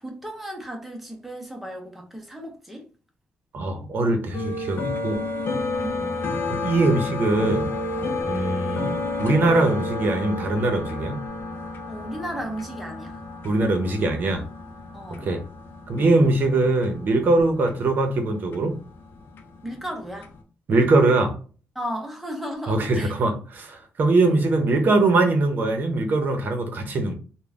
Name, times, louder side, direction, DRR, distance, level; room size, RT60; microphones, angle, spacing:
voice 1, 0.0-2.9 5.8-6.2 11.9-13.2 14.9-15.3 19.6-20.3 21.7-23.1, equal, 5° right, 0.8 m, -34 dB
voice 2, 3.5-5.2 6.5-7.7 8.2-11.2 13.4-14.4 15.2-15.4 15.9-18.7 20.7-21.3 22.7-27.1, right 2 dB, 45° right, 0.8 m, -22 dB
sound 1, 4.3-20.4, left 2 dB, 50° left, 0.6 m, -31 dB
3.8 x 2.2 x 3.5 m
wide cardioid pair, 165°, 5 cm